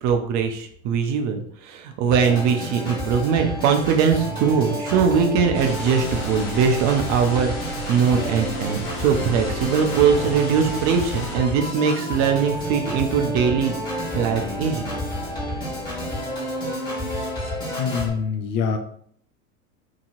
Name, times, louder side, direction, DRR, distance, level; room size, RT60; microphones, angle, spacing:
voice 1, 0.0-13.7 14.1-15.0, right 6 dB, 40° right, 5 dB, 0.6 m, -21 dB
Organ, 2.1-18.1, equal, 10° left, 1.4 m, -30 dB
sound 1, 5.5-11.4, left 1 dB, 80° left, 1.4 m, -34 dB
voice 2, 17.8-18.8, left 6 dB, 40° left, 6 dB, 0.4 m, -24 dB
2.9 x 2.7 x 2.6 m, 0.62 s
hypercardioid pair, 105°, 44 cm